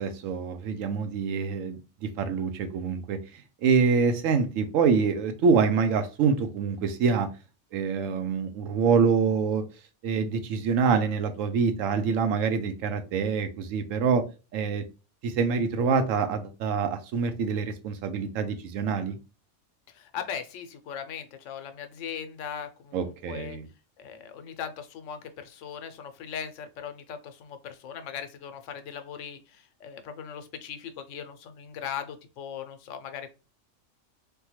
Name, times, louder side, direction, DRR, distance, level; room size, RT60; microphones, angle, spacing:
voice 1, 0.0-3.2 3.6-7.3 7.7-9.6 10.0-14.2 14.5-14.8 15.2-19.2 22.9-23.7, right 5 dB, 90° right, 8 dB, 1.0 m, -25 dB
voice 2, 19.9-23.6 24.0-33.3, left 8 dB, 75° left, 8 dB, 0.9 m, -39 dB
3.5 x 2.2 x 2.9 m, 0.31 s
omnidirectional pair, 1.3 m